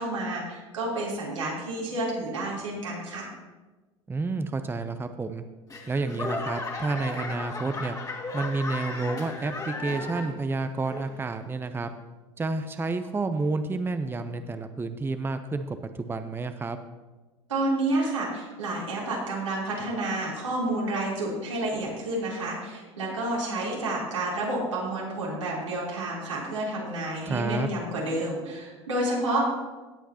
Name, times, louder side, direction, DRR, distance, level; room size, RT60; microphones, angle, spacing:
voice 1, 0.0-3.3 17.5-29.5, right 1 dB, 85° right, -5 dB, 3.6 m, -30 dB
voice 2, 4.1-5.4 5.9-8.0 8.3-11.9 12.4-16.8 27.2-27.7, right 3 dB, 15° right, 9 dB, 0.7 m, -30 dB
Laughter / Clapping / Crowd, 5.7-10.5 10.8-11.3 11.9-12.0, left 2 dB, 20° left, 2.0 m, -35 dB
17.0 x 8.1 x 2.9 m, 1.2 s
hypercardioid pair, 80°, 16 cm